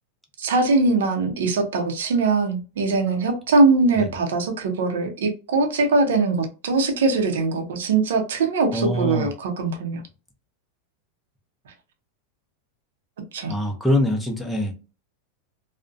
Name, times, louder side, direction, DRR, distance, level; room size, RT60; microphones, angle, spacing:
voice 1, 0.4-10.0 13.3-13.5, right 3 dB, 85° right, 0.6 m, -21 dB
voice 2, 8.7-9.3 13.5-14.7, left 1 dB, 5° left, 0.6 m, -23 dB
2.4 x 2.1 x 2.5 m
supercardioid pair, 140°, 0 cm